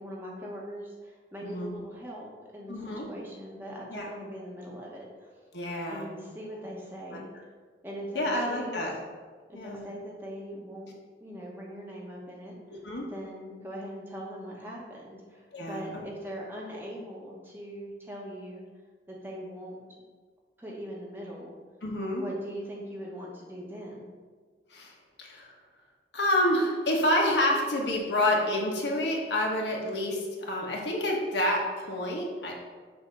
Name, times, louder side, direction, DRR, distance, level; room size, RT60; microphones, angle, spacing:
voice 1, 0.0-5.3 5.9-7.3 7.8-8.9 9.5-10.9 11.2-12.6 13.1-18.6 19.1-19.8 20.6-21.5 22.1-24.1, equal, 10° right, -3 dB, 0.9 m, -41 dB
voice 2, 1.4-1.7 2.7-3.0 3.9-4.1 5.5-6.1 7.1-7.2 8.1-8.9 9.5-9.8 12.7-13.0 15.5-16.0 21.8-22.2 24.7-24.9 25.2-25.5 26.1-32.5, left 1 dB, 80° left, -1 dB, 1.1 m, -28 dB
6.9 x 2.7 x 5.3 m, 1.5 s
head